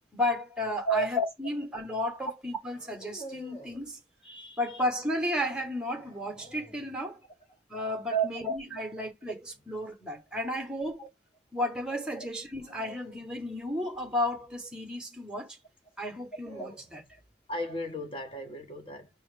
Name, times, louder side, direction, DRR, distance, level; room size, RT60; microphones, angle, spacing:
voice 1, 0.1-4.0 4.6-7.2 7.7-11.1 11.5-15.6 16.0-17.0, left 1 dB, 5° right, 0.9 m, -33 dB
sound 1, 0.8-1.1 2.6-3.9 6.0-7.0 9.4-9.8 12.6-15.0 16.0-17.3, right 2 dB, 80° left, 2.8 m, -50 dB
voice 2, 4.2-4.6 8.1-8.3 11.0-11.1 12.2-12.3 17.5-19.1, right 4 dB, 30° left, 0.8 m, -32 dB
5.6 x 2.8 x 3.2 m
head